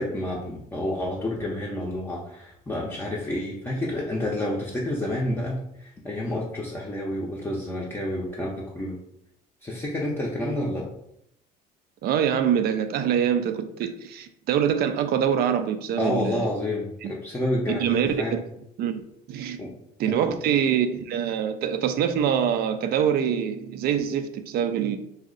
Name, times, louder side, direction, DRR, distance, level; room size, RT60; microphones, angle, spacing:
voice 1, 0.0-9.0 9.6-10.9 16.0-18.3 19.6-19.7 20.1-20.3, left 1 dB, 15° left, 0.5 m, -29 dB
voice 2, 12.0-16.5 17.0-17.1 17.7-18.4 18.8-19.0 19.3-19.6 20.0-25.0, right 8 dB, 65° right, 0.4 m, -24 dB
2.7 x 2.0 x 3.8 m
cardioid pair, 110°, 17 cm